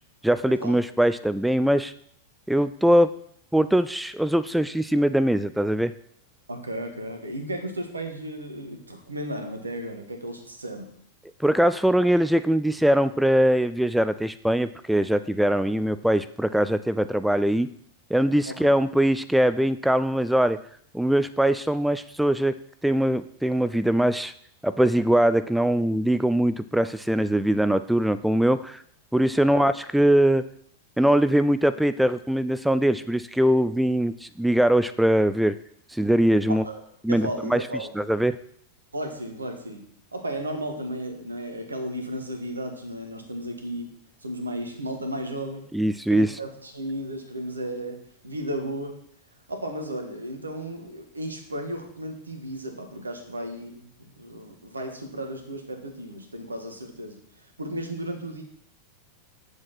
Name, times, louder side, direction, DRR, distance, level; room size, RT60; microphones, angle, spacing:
voice 1, 0.2-1.9 2.5-3.1 3.5-5.9 11.4-17.7 18.1-20.6 20.9-22.5 22.8-24.3 24.6-28.8 29.1-30.4 31.0-35.5 35.9-36.6 37.0-37.6 38.0-38.4 45.7-46.4, right 1 dB, ahead, 13 dB, 0.3 m, -22 dB
voice 2, 6.5-10.9 18.5-18.7 29.5-29.7 36.5-36.8 37.1-37.9 38.9-39.9 40.1-43.9 44.2-45.7 46.1-48.0 48.2-48.9 49.5-57.2 57.6-58.4, right 1 dB, 80° right, 4 dB, 1.6 m, -34 dB
8.7 x 7.1 x 4.3 m, 0.65 s
figure-of-eight pair, 90°, 0 cm